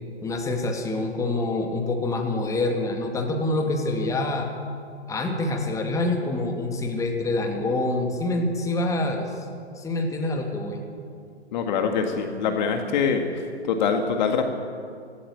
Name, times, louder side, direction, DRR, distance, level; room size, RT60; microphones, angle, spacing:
voice 1, 0.2-4.5 5.1-9.5 9.8-10.8, left 2 dB, 10° left, 3 dB, 2.2 m, -26 dB
voice 2, 11.5-14.4, left 6 dB, 40° left, 5 dB, 2.0 m, -24 dB
17.0 x 16.5 x 9.6 m, 2.3 s
figure-of-eight pair, 120°, 34 cm